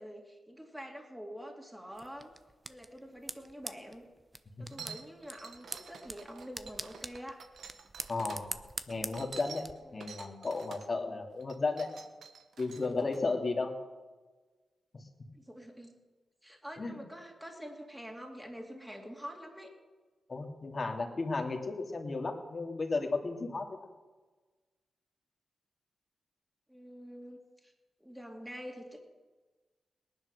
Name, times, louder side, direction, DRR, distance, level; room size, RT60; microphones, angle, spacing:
voice 1, 0.0-2.3 2.7-4.1 4.6-7.4 9.8-10.1 11.0-11.2 15.3-16.0 16.4-19.7 26.7-27.7 28.0-29.0, equal, 5° right, 1 dB, 2.5 m, -46 dB
sound 1, 1.9-9.7, right 2 dB, 20° right, 0.8 m, -45 dB
voice 2, 4.6-4.9 8.1-8.5 8.9-9.7 9.9-11.9 12.6-13.7 16.8-17.0 20.3-23.9, left 3 dB, 40° left, 2 dB, 2.5 m, -34 dB
sound 2, 4.7-8.4 8.9-10.9 11.4-13.2, right 6 dB, 80° right, 1.2 m, -49 dB
19.0 x 10.5 x 6.6 m, 1.3 s
cardioid pair, 75°, 0 cm